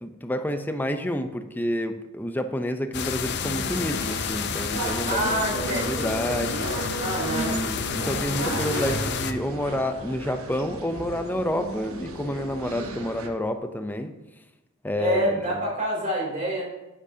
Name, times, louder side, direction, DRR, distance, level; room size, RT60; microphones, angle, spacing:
voice 1, 0.0-5.4 5.7-6.7 7.4-14.1 14.8-15.4, left 1 dB, 10° left, 8 dB, 0.6 m, -29 dB
sound 1, 2.9-9.3, left 6 dB, 55° left, 0.6 m, -30 dB
sound 2, 3.4-13.3, right 2 dB, 90° right, 1.1 m, -34 dB
voice 2, 5.0-6.1 7.0-7.5 15.0-16.6, right 1 dB, 35° right, -4 dB, 3.2 m, -27 dB
9.9 x 8.9 x 2.8 m, 1.0 s
head